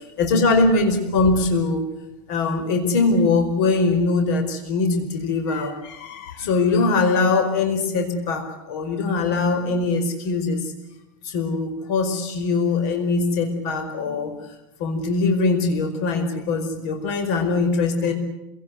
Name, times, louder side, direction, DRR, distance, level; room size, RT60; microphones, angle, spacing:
voice 1, 0.2-1.8 2.3-10.6 11.3-14.3 14.8-18.1, left 3 dB, 60° left, 6 dB, 5.1 m, -22 dB
26.5 x 18.5 x 9.6 m, 0.92 s
supercardioid pair, 145°, 11 cm